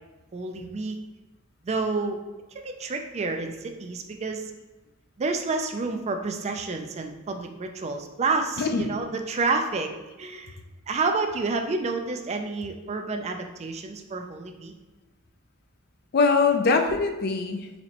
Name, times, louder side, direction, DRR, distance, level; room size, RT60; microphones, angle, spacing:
voice 1, 0.3-1.0 1.6-2.2 2.5-4.5 5.2-9.9 10.2-10.6 10.9-14.7, right 3 dB, 30° right, 5 dB, 0.4 m, -29 dB
voice 2, 8.6-8.9 16.1-17.8, left 4 dB, 50° left, 6 dB, 0.4 m, -23 dB
4.1 x 3.0 x 2.9 m, 1.1 s
head